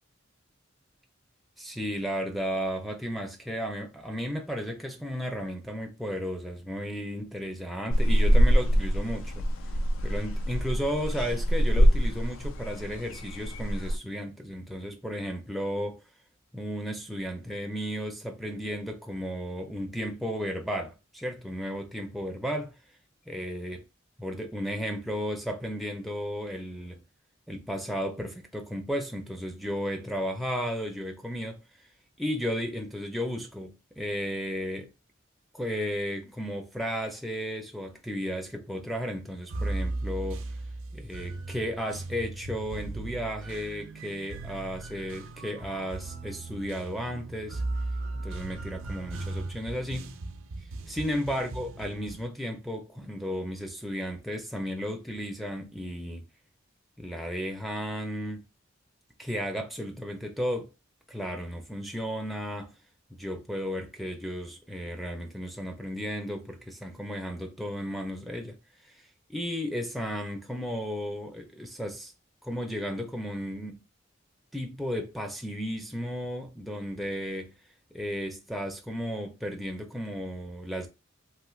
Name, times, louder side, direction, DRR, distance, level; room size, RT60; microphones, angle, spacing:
voice 1, 1.6-9.5 10.0-16.0 16.5-22.7 23.3-23.8 24.2-27.0 27.5-31.6 32.2-34.9 35.5-40.4 40.9-47.6 48.1-50.1 50.9-56.2 57.0-58.5 59.2-60.7 61.1-62.7 63.1-68.6 68.8-69.0 69.3-72.1 72.4-73.8 74.5-77.5 77.9-80.9, equal, ahead, 0.4 m, -34 dB
sound 1, 7.9-14.0, equal, 85° left, 0.4 m, -24 dB
sound 2, 39.5-52.3, right 2 dB, 85° right, 0.4 m, -37 dB
3.1 x 2.8 x 2.2 m
head